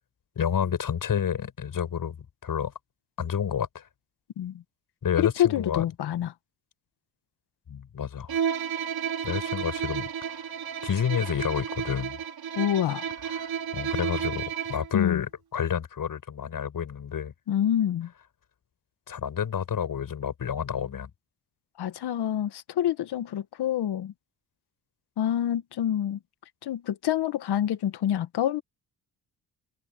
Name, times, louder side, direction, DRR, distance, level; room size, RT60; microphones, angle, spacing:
voice 1, 0.4-2.7 3.2-3.9 5.0-5.8 7.7-8.4 9.2-10.5 10.8-12.2 13.3-17.3 19.1-21.1, left 8 dB, 55° left, 7.8 m, -30 dB
voice 2, 5.2-6.3 12.6-13.1 14.9-15.2 17.5-18.1 21.8-24.1 25.2-26.2 26.6-28.6, left 11 dB, 70° left, 1.9 m, -27 dB
Bowed string instrument, 8.3-15.0, right 8 dB, 60° right, 3.3 m, -32 dB
cardioid pair, 90°, 41 cm